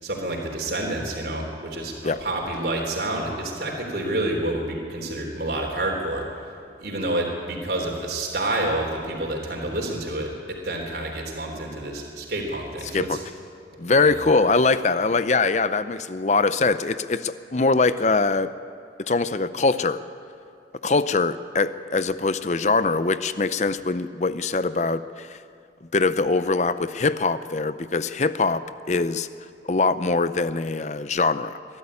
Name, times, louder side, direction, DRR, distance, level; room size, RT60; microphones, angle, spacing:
voice 1, 0.0-6.3 6.8-13.2 14.0-14.2, right 1 dB, 60° right, 0 dB, 3.6 m, -28 dB
voice 2, 13.8-18.5 19.0-20.0 20.8-25.4 25.9-28.6 28.9-29.3 29.7-31.6, left 3 dB, 40° left, 13 dB, 0.6 m, -22 dB
22.0 x 13.0 x 9.7 m, 2.5 s
head